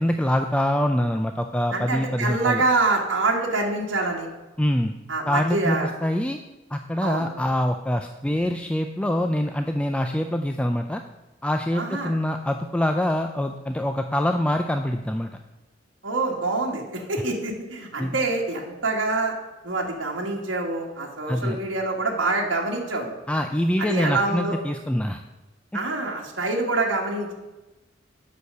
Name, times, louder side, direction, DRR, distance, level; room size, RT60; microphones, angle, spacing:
voice 1, 0.0-2.6 4.6-4.9 5.3-6.4 6.7-11.0 11.4-15.3 18.0-18.2 21.3-21.6 23.3-25.2 25.7-25.8, left 1 dB, 5° left, 5 dB, 0.4 m, -25 dB
voice 2, 1.7-4.3 5.1-5.9 7.0-7.3 11.7-12.1 16.0-19.3 19.6-23.1 23.8-24.5 25.7-27.3, right 3 dB, 70° right, -1 dB, 1.6 m, -26 dB
8.2 x 6.3 x 6.6 m, 1.1 s
head